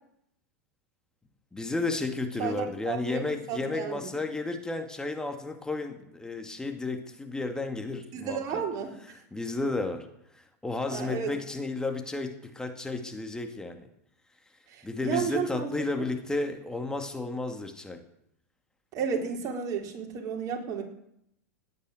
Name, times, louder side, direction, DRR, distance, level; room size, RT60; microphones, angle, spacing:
voice 1, 1.5-8.6 9.3-10.1 10.3-13.9 14.8-18.0, left 2 dB, 10° left, 5 dB, 2.2 m, -32 dB
voice 2, 2.4-3.2 3.5-4.0 8.1-8.9 10.9-11.3 14.7-15.7 18.9-20.8, right 6 dB, 45° right, 2 dB, 4.0 m, -32 dB
18.0 x 9.6 x 7.8 m, 0.75 s
hypercardioid pair, 95°, 9 cm